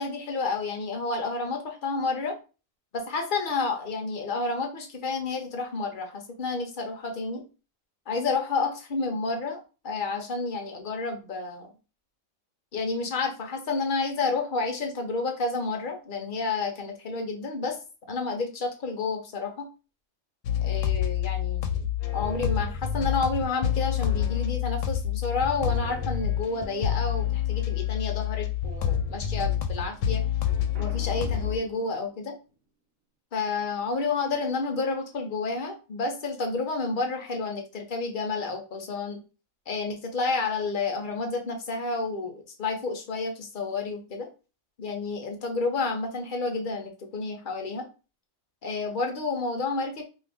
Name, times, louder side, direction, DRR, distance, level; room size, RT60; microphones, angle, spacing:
voice 1, 0.0-2.4 2.9-7.4 8.1-11.7 12.7-17.8 18.1-19.7 20.6-30.2 30.8-32.3 33.3-39.2 39.7-44.3 44.8-47.9 48.6-50.0, left 4 dB, 55° left, 3 dB, 0.6 m, -30 dB
sound 1, 20.4-31.6, left 9 dB, 75° left, 0.9 m, -28 dB
Boom, 30.7-32.6, right 3 dB, 75° right, 1.0 m, -46 dB
2.6 x 2.5 x 3.4 m, 0.33 s
omnidirectional pair, 1.4 m